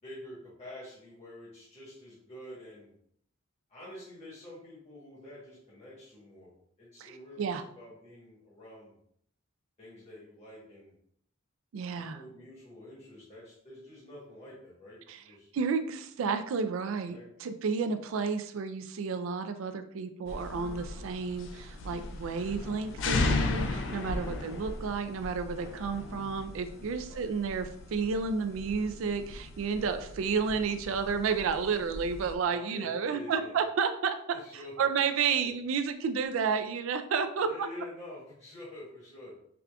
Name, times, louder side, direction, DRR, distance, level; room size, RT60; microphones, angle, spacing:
voice 1, 0.0-2.9 3.7-6.5 6.8-9.0 9.8-10.9 11.9-15.5 17.0-17.3 24.1-24.5 27.0-27.2 29.8-29.9 32.4-33.5 34.3-34.9 35.4-35.5 37.4-39.4, left 1 dB, 30° left, -7 dB, 1.1 m, -48 dB
voice 2, 11.7-12.2 15.1-15.2 15.5-34.2 34.8-37.7, right 5 dB, 70° right, 9 dB, 0.3 m, -31 dB
sound 1, 20.3-32.4, left 2 dB, 60° left, 0.4 m, -36 dB
4.8 x 2.4 x 2.2 m, 0.69 s
head